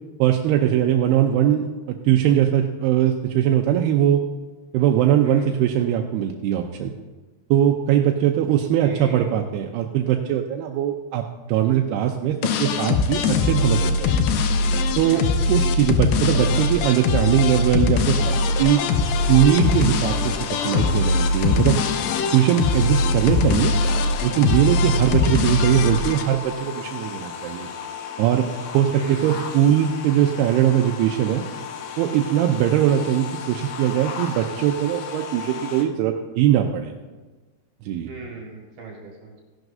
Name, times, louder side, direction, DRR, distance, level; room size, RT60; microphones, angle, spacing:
voice 1, 0.2-4.2 4.7-6.9 7.5-11.2 11.5-14.2 15.0-18.8 19.3-21.8 22.3-23.7 24.2-27.7 28.2-28.5 28.7-31.4 32.0-36.9 37.9-38.1, right 11 dB, 85° right, 2 dB, 2.5 m, -21 dB
voice 2, 8.8-9.3 15.0-15.5 28.9-29.4 38.1-39.4, right 3 dB, 65° right, -1 dB, 2.9 m, -38 dB
sound 1, 12.4-26.2, left 4 dB, 90° left, 1.9 m, -21 dB
Car washing, 18.2-35.8, left 6 dB, 75° left, 2.2 m, -35 dB
16.0 x 11.0 x 2.6 m, 1.2 s
omnidirectional pair, 4.9 m